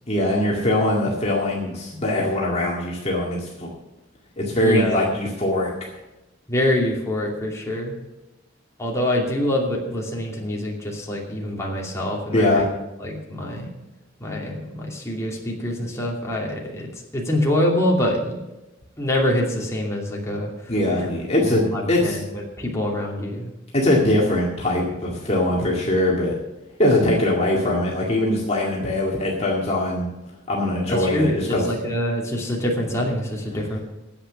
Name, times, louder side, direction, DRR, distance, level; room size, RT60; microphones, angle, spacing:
voice 1, 0.1-3.7 4.4-5.7 12.3-12.7 20.7-22.2 23.7-26.4 26.8-30.1 30.5-31.6, left 1 dB, 35° left, -3 dB, 2.0 m, -21 dB
voice 2, 4.6-5.1 6.5-7.9 8.8-12.7 13.0-13.7 14.2-16.9 17.1-18.3 19.0-20.7 21.0-21.1 21.4-23.5 30.9-33.8, left 1 dB, 15° left, -2 dB, 2.7 m, -25 dB
10.0 x 8.3 x 8.4 m, 0.99 s
head